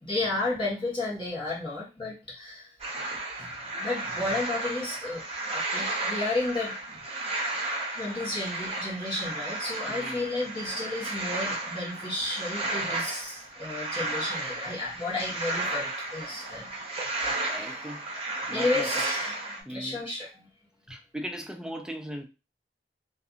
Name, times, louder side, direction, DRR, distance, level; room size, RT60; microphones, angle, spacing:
voice 1, 0.0-2.7 3.4-3.5 3.8-7.0 7.9-16.7 17.4-17.9 18.5-20.5, left 2 dB, 30° left, 1.2 m, -32 dB
sound 1, 2.8-19.6, right 2 dB, 35° right, 0.7 m, -33 dB
voice 2, 9.9-10.3 17.4-18.1 18.5-18.9 19.7-20.1 20.9-22.2, equal, 5° right, 0.3 m, -38 dB
2.6 x 2.5 x 2.5 m
head